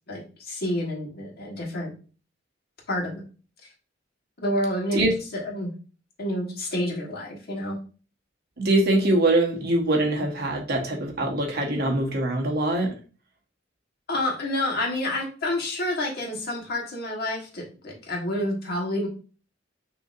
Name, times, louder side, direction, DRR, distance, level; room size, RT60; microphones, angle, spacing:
voice 1, 0.1-1.9 2.9-3.2 4.4-5.0 5.3-5.7 6.2-7.8 14.1-19.1, left 1 dB, 55° left, 0 dB, 1.2 m, -29 dB
voice 2, 8.6-12.9, right 2 dB, 55° right, 1 dB, 1.0 m, -23 dB
5.9 x 2.8 x 2.4 m, 0.37 s
head